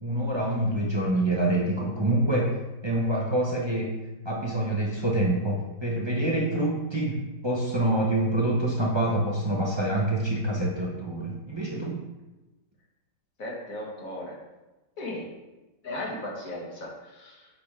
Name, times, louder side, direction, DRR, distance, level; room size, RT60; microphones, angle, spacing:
voice 1, 0.0-2.6 2.8-4.0 4.2-12.0, right 1 dB, 40° right, -2 dB, 0.4 m, -26 dB
voice 2, 13.4-14.4 15.0-15.3 15.8-17.5, left 1 dB, 50° left, -3 dB, 1.9 m, -36 dB
6.8 x 5.0 x 3.5 m, 1.0 s
omnidirectional pair, 1.9 m